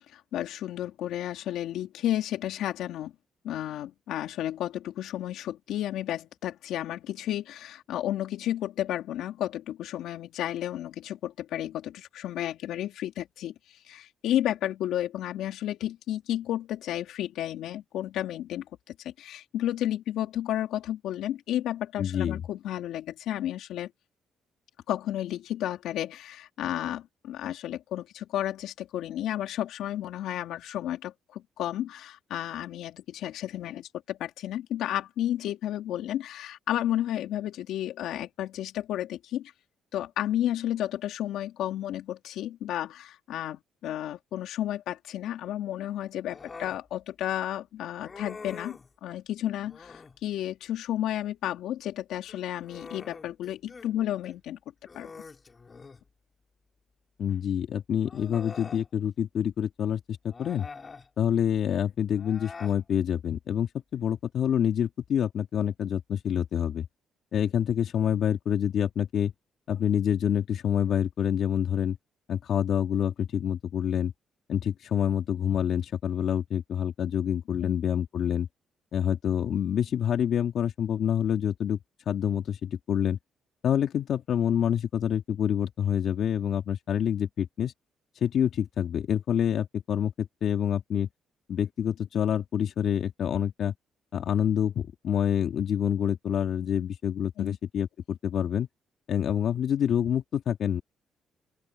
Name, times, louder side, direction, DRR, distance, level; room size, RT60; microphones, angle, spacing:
voice 1, 0.1-3.1 3.4-23.9 24.9-39.5 39.9-54.6 54.9-55.1 77.6-77.8 97.4-97.6, left 12 dB, 80° left, 3.3 m, -32 dB
voice 2, 22.0-22.4 57.2-60.7 61.2-66.9 67.3-69.3 69.7-72.0 72.3-74.1 74.5-78.5 78.9-81.8 82.1-83.2 83.6-87.7 88.2-91.1 91.5-93.7 94.1-98.7 99.1-100.8, left 9 dB, 65° left, 3.0 m, -27 dB
Human voice, 46.3-46.8 48.0-48.9 49.6-50.2 52.1-53.9 54.2-54.4 54.8-56.1 57.3-57.4 58.0-58.9 60.3-61.1 62.1-62.8, left 4 dB, 35° left, 5.5 m, -45 dB
open air
cardioid pair, 80°, 0 cm